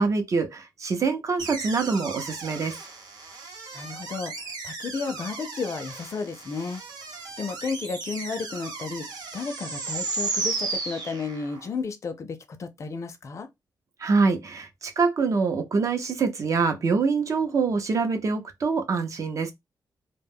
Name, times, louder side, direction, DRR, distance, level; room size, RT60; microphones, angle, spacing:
voice 1, 0.0-2.7 14.0-19.5, right 4 dB, 45° right, 0.6 m, -25 dB
sound 1, 1.4-11.7, right 4 dB, 75° right, 0.9 m, -35 dB
voice 2, 3.7-4.3 4.6-6.8 7.4-9.1 9.3-13.5, left 4 dB, 40° left, 0.5 m, -32 dB
2.2 x 2.0 x 3.4 m
wide cardioid pair, 135°, 7 cm